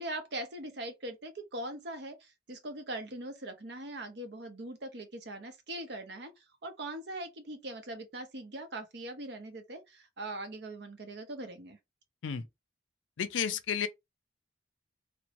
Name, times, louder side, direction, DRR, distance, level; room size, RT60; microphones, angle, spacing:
voice 1, 0.0-6.3 6.6-11.8, right 1 dB, 60° right, 0.7 m, -41 dB
voice 2, 13.2-13.9, left 7 dB, 80° left, 0.4 m, -32 dB
3.0 x 2.1 x 2.9 m
head